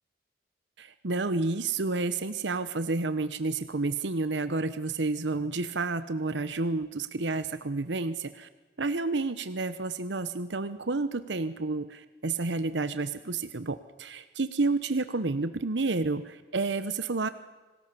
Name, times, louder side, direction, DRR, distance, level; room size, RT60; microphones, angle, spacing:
voice 1, 0.8-8.5 8.8-17.3, right 3 dB, 75° right, 12 dB, 1.0 m, -30 dB
27.0 x 19.5 x 6.9 m, 1.2 s
head